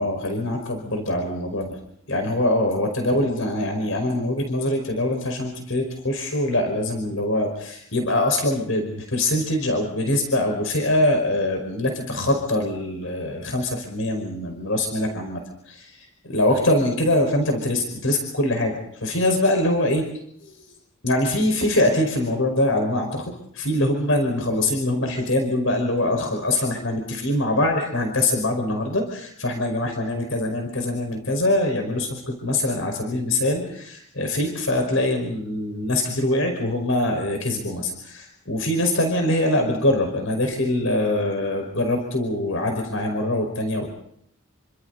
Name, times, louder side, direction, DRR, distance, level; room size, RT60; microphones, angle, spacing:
voice 1, 0.0-1.8 2.1-16.1 16.3-20.0 20.5-20.7 21.0-43.9, left 1 dB, 75° left, 4 dB, 5.2 m, -23 dB
29.0 x 26.0 x 4.1 m, 0.67 s
head